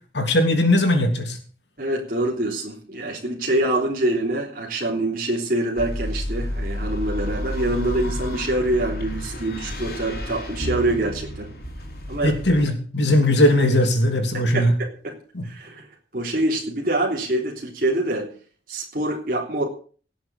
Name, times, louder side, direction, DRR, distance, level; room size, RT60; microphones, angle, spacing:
voice 1, 0.1-1.4 12.2-14.7 15.3-15.5, left 1 dB, 75° left, 5 dB, 3.2 m, -19 dB
voice 2, 1.8-11.5 12.1-12.4 14.5-15.2 15.4-15.9 16.1-18.4 18.7-19.6, right 1 dB, 50° right, -1 dB, 3.4 m, -25 dB
sound 1, 5.8-12.7, left 1 dB, 55° left, 3.8 m, -31 dB
17.5 x 7.6 x 7.0 m, 0.43 s
head